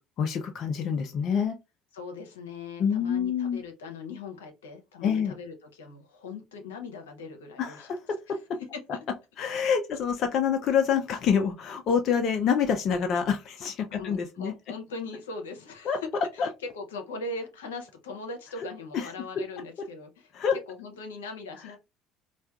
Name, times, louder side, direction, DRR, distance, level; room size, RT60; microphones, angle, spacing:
voice 1, 0.2-1.6 2.8-3.6 5.0-5.3 7.6-8.0 9.4-14.5 15.9-16.0 16.4-16.5 18.9-19.1 20.3-20.6, left 7 dB, 50° left, 5 dB, 0.5 m, -26 dB
voice 2, 1.9-7.9 13.9-16.1 16.3-16.5 16.7-20.3 20.7-21.8, left 3 dB, 80° left, 5 dB, 0.8 m, -40 dB
4.3 x 2.4 x 2.3 m, 0.25 s
figure-of-eight pair, 60°, 0 cm